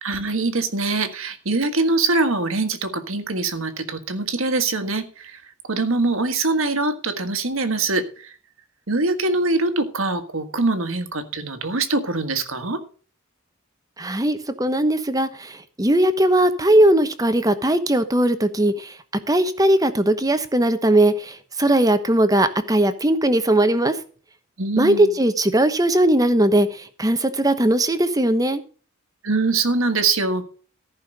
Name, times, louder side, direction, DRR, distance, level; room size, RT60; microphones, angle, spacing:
voice 1, 0.0-5.4 5.7-8.3 8.9-12.8 24.6-25.1 29.2-30.4, right 3 dB, 70° right, 1.7 m, -23 dB
voice 2, 14.0-18.9 19.3-23.9 24.8-28.6, right 1 dB, 15° right, 1.0 m, -19 dB
14.5 x 5.7 x 6.5 m
head